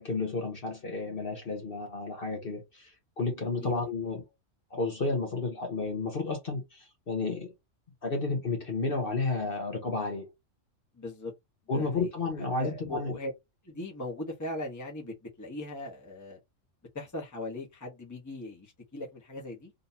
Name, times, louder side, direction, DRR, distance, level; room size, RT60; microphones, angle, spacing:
voice 1, 0.0-4.2 4.7-7.5 8.0-10.3 11.7-13.2, left 3 dB, 45° left, 1.2 m, -32 dB
voice 2, 10.9-11.3 11.7-12.1 12.4-13.3 13.6-16.4 16.9-19.7, left 2 dB, 15° left, 1.1 m, -39 dB
3.9 x 2.7 x 2.8 m
omnidirectional pair, 1.3 m